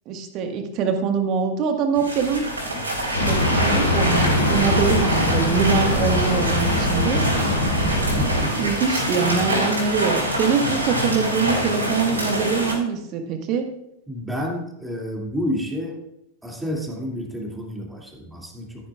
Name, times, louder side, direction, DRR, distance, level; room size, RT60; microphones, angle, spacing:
voice 1, 0.0-2.4 3.2-7.2 7.6-7.9 8.1-13.7, right 5 dB, 40° right, 5 dB, 1.6 m, -24 dB
sound 1, 1.9-12.7, right 1 dB, 80° right, 4.1 m, -25 dB
sound 2, 3.1-8.4, left 1 dB, 80° left, 2.7 m, -22 dB
voice 2, 8.1-8.7 14.1-16.0 16.4-18.9, equal, 5° right, -1 dB, 2.6 m, -30 dB
14.0 x 10.0 x 2.4 m, 0.82 s
figure-of-eight pair, 90°, 0 cm